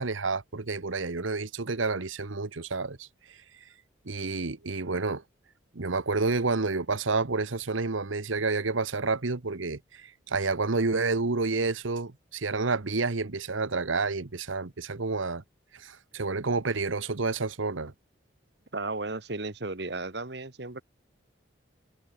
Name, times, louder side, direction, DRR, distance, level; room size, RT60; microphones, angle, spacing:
voice 1, 0.0-3.1 4.1-5.2 5.7-15.4 15.7-17.9, right 3 dB, 90° right, 1.2 m, -29 dB
voice 2, 18.7-20.8, right 2 dB, 60° right, 1.6 m, -34 dB
head